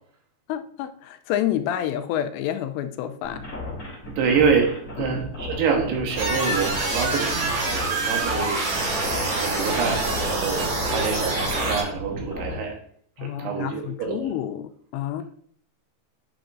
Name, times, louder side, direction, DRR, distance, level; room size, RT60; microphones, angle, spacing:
voice 1, 0.5-3.4 5.0-5.2 13.2-15.2, left 11 dB, 85° left, 8 dB, 2.8 m, -29 dB
sound 1, 3.2-12.5, left 1 dB, 30° left, 3.5 m, -35 dB
voice 2, 4.1-7.3 7.6-8.7 9.4-10.0 10.3-12.7 13.2-13.8 14.1-14.3, right 6 dB, 75° right, 1 dB, 3.1 m, -26 dB
sound 2, 6.2-11.8, right 2 dB, 45° right, 3.4 m, -26 dB
9.3 x 5.8 x 2.5 m, 0.62 s
omnidirectional pair, 5.0 m